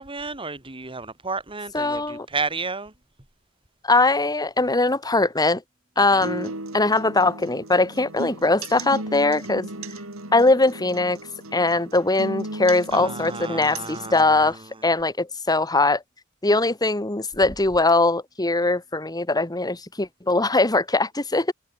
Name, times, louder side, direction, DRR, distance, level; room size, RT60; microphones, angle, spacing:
voice 1, 0.0-2.9 6.1-6.2 12.9-14.6, right 4 dB, 25° right, 3.1 m, -32 dB
voice 2, 1.7-2.3 3.8-5.6 6.0-9.7 10.3-11.2 11.5-14.6 14.8-16.0 16.4-21.5, left 2 dB, 20° left, 1.9 m, -21 dB
sound 1, 6.2-14.2, right 2 dB, 70° right, 6.7 m, -36 dB
head